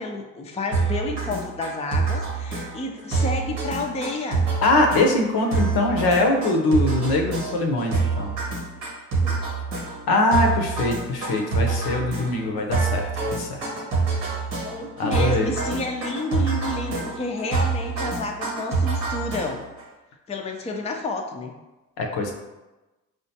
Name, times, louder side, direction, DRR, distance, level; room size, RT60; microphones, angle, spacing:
voice 1, 0.0-4.5 8.7-8.8 9.2-9.4 14.6-19.6 20.3-21.5, left 2 dB, 15° left, 2 dB, 0.5 m, -30 dB
sound 1, 0.7-19.8, right 4 dB, 90° right, 1.0 m, -26 dB
voice 2, 4.6-8.3 10.1-13.7 15.0-15.5 22.0-22.3, left 2 dB, 65° left, 2 dB, 0.7 m, -22 dB
4.8 x 2.2 x 2.7 m, 1.1 s
hypercardioid pair, 45°, 40 cm